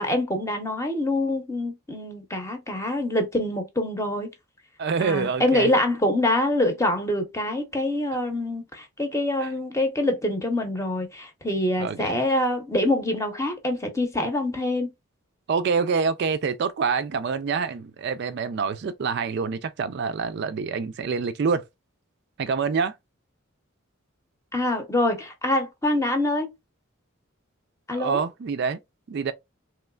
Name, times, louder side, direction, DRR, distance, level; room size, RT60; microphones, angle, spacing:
voice 1, 0.0-4.3 5.0-14.9 24.5-26.5 27.9-28.2, left 1 dB, 15° left, 0.8 m, -25 dB
voice 2, 4.8-5.7 9.4-9.5 11.8-12.2 15.5-21.6 22.4-23.0 27.9-28.8 29.1-29.3, right 5 dB, 55° right, 0.4 m, -26 dB
3.2 x 3.1 x 2.2 m
head